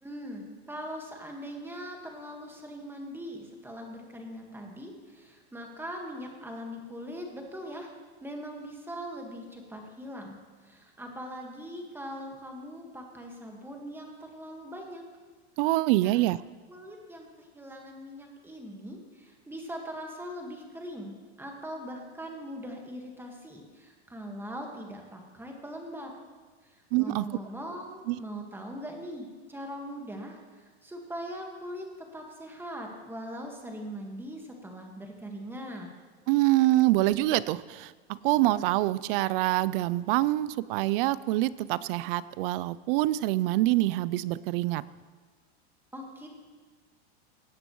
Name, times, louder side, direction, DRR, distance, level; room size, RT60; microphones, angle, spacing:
voice 1, 0.0-7.9 8.2-15.0 16.0-16.2 16.7-26.1 26.6-31.9 32.1-35.9 45.9-46.3, equal, 5° right, 1 dB, 1.5 m, -41 dB
voice 2, 15.6-16.4 26.9-27.3 28.1-28.2 36.3-44.9, right 17 dB, 60° right, 19 dB, 0.4 m, -25 dB
17.5 x 9.6 x 3.1 m, 1.4 s
supercardioid pair, 125°, 33 cm